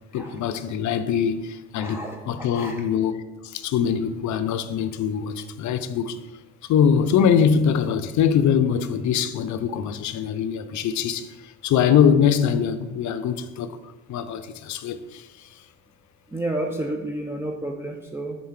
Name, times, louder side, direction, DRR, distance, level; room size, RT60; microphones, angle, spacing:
voice 1, 0.1-6.2 6.7-13.8 14.1-15.5, left 7 dB, 70° left, 0.5 m, -23 dB
voice 2, 1.8-2.8 16.3-18.4, right 1 dB, 10° right, 0.5 m, -31 dB
4.7 x 3.9 x 5.8 m
cardioid pair, 90°, 30 cm